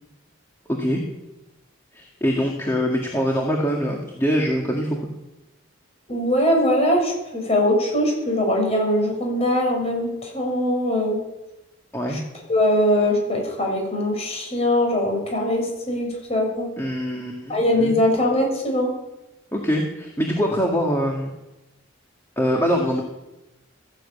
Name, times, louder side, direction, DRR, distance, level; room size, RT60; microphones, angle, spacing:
voice 1, 0.7-1.0 1.9-5.1 11.9-12.2 16.8-18.0 19.5-21.3 22.4-23.0, equal, 15° left, -1 dB, 1.9 m, -23 dB
voice 2, 6.1-11.2 12.1-12.2 12.5-16.7 17.5-18.9, left 1 dB, 30° left, 1 dB, 6.2 m, -21 dB
14.5 x 11.0 x 8.5 m, 0.96 s
head